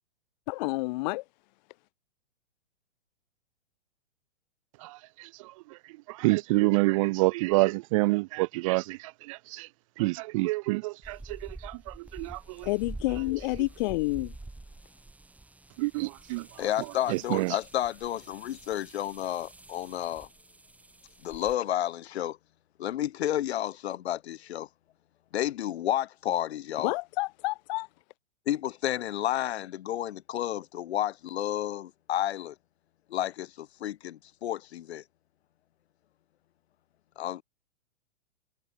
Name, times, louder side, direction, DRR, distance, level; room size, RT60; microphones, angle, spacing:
voice 1, 0.5-1.2 12.6-14.3 26.8-27.9, left 22 dB, 35° left, 1.2 m, -29 dB
voice 2, 6.1-9.7 10.0-12.7 15.8-17.6, right 23 dB, 30° right, 0.6 m, -28 dB
sound 1, 11.0-21.5, right 2 dB, 5° right, 3.6 m, -47 dB
voice 3, 16.6-20.3 21.2-22.4 22.8-24.7 25.3-26.9 28.5-32.5 33.1-35.0 37.2-37.4, left 12 dB, 60° left, 2.5 m, -31 dB
hypercardioid pair, 140°, 37 cm